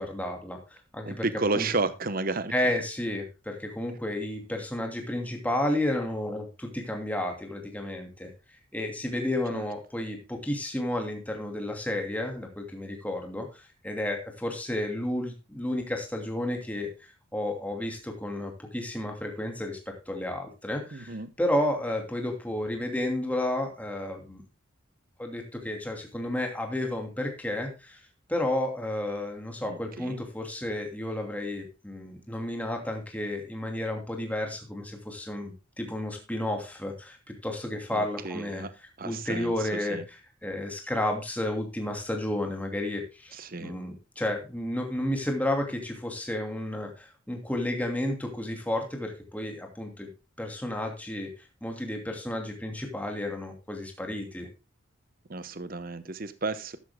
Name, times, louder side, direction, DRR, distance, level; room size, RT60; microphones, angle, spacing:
voice 1, 0.0-1.2 1.5-1.7 2.5-8.3 8.7-16.9 17.3-24.4 25.2-28.0 28.3-38.6 39.0-40.0 40.4-50.1 50.4-51.3 51.6-54.5, left 1 dB, 5° left, 2 dB, 2.7 m, -32 dB
voice 2, 1.1-2.7 9.5-9.7 20.9-21.3 29.7-30.2 37.9-38.7 39.0-40.0 43.3-43.8 55.3-56.8, right 3 dB, 40° right, 13 dB, 0.9 m, -32 dB
13.5 x 11.0 x 2.2 m, 0.27 s
head